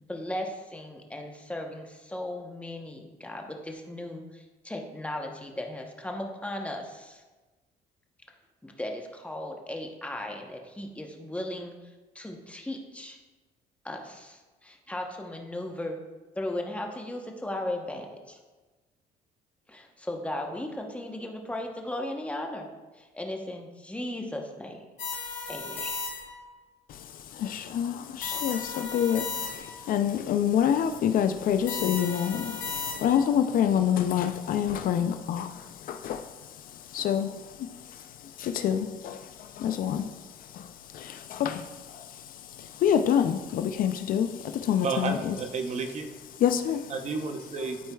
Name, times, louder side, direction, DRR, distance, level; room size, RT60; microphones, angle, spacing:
voice 1, 0.1-7.2 8.6-11.7 12.1-13.2 13.8-16.0 16.4-18.4 19.7-22.7 23.0-24.8 25.5-26.1, left 1 dB, 5° left, 2 dB, 0.9 m, -36 dB
sound 1, 25.0-26.5 28.2-29.9 31.7-33.3, left 5 dB, 90° left, 1.4 m, -35 dB
voice 2, 26.9-36.3 36.7-45.4 46.4-46.9, left 9 dB, 55° left, 9 dB, 0.4 m, -28 dB
voice 3, 44.8-46.2 46.9-47.9, right 4 dB, 45° right, 6 dB, 0.8 m, -32 dB
12.5 x 4.4 x 2.3 m, 1.2 s
cardioid pair, 110°, 17 cm